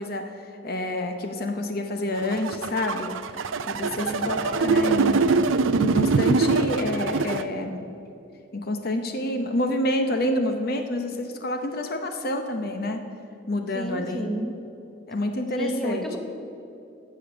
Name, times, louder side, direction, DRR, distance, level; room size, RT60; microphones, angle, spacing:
voice 1, 0.0-3.1 3.6-5.4 5.8-7.9 8.5-13.1 13.5-14.3 15.1-16.0, left 1 dB, 50° left, 6 dB, 0.8 m, -28 dB
sound 1, 2.2-7.4, right 4 dB, 85° right, 0.5 m, -23 dB
voice 2, 4.0-4.4 13.7-14.6 15.5-16.2, equal, ahead, 2 dB, 1.0 m, -31 dB
15.0 x 5.1 x 8.2 m, 2.6 s
head